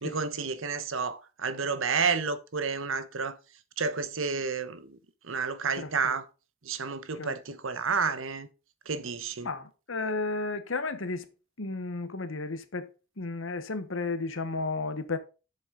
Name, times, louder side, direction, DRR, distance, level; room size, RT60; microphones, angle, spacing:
voice 1, 0.0-3.4 3.8-5.0 5.2-6.2 6.6-8.5 8.9-9.5, right 5 dB, 85° right, 1.0 m, -30 dB
voice 2, 5.7-6.1 7.1-7.3 9.4-11.3 11.6-12.9 13.2-15.2, left 3 dB, 80° left, 1.1 m, -33 dB
7.8 x 6.9 x 3.8 m
head